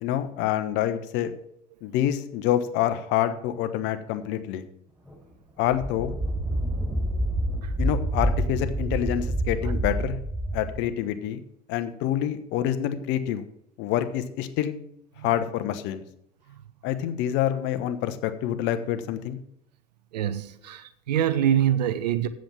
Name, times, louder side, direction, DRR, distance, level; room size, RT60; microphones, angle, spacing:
voice 1, 0.0-1.3 1.8-4.7 5.6-6.1 7.8-10.2 10.5-11.4 11.7-13.4 13.8-14.8 15.2-16.0 16.8-19.4, left 11 dB, 65° left, 10 dB, 1.1 m, -27 dB
sound 1, 5.1-5.2 5.6-10.8, right 1 dB, 5° right, 4.6 m, -27 dB
voice 2, 20.1-22.3, right 10 dB, 85° right, 12 dB, 0.6 m, -25 dB
7.7 x 7.6 x 7.3 m, 0.74 s
hypercardioid pair, 75°, 21 cm